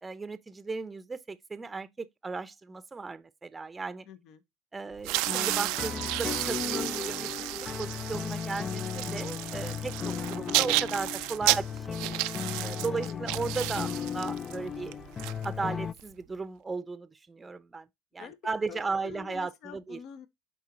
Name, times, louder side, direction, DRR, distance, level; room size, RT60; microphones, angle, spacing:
voice 1, 0.0-4.1 4.7-12.2 12.6-15.0 15.4-17.9 18.1-20.0, right 4 dB, 20° right, 0.7 m, -36 dB
voice 2, 4.0-4.4 12.6-13.2 18.2-18.4 18.7-20.3, left 8 dB, 55° left, 0.8 m, -47 dB
sound 1, 5.0-16.0, right 20 dB, 65° right, 0.4 m, -32 dB
sound 2, 5.3-15.9, left 7 dB, 30° left, 0.4 m, -36 dB
7.5 x 3.8 x 3.8 m
hypercardioid pair, 90°, 0 cm